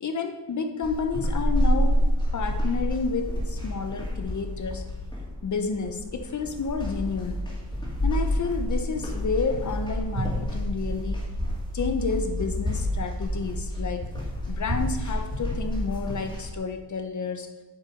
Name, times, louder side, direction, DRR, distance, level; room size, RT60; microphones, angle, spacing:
voice 1, 0.0-2.0 2.3-4.9 5.4-7.4 8.0-11.3 11.7-14.0 14.5-17.5, left 4 dB, 45° left, 6 dB, 0.8 m, -30 dB
sound 1, 0.8-16.5, equal, 10° left, 2.5 m, -28 dB
7.7 x 7.1 x 5.2 m, 1.2 s
wide cardioid pair, 130°, 39 cm